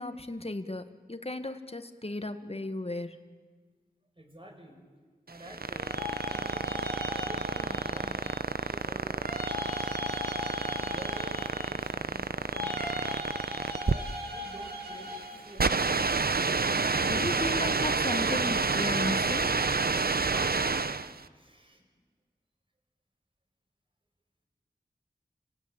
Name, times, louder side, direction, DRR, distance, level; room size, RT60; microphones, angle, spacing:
voice 1, 0.0-3.2 17.0-19.6, left 2 dB, 40° left, 9 dB, 1.8 m, -35 dB
voice 2, 4.2-4.8 5.3-6.7 7.1-8.4 8.7-9.3 10.8-13.0 13.8-16.2 17.3-17.5 20.3-21.8, right 1 dB, 35° right, 2 dB, 6.0 m, -49 dB
sound 1, 5.3-21.2, right 4 dB, 70° right, 0.8 m, -29 dB
sound 2, 5.7-8.6 9.2-12.0 12.5-15.5, left 2 dB, 85° right, 6.4 m, -38 dB
29.5 x 17.0 x 8.9 m, 1.5 s
wide cardioid pair, 45°, 16 cm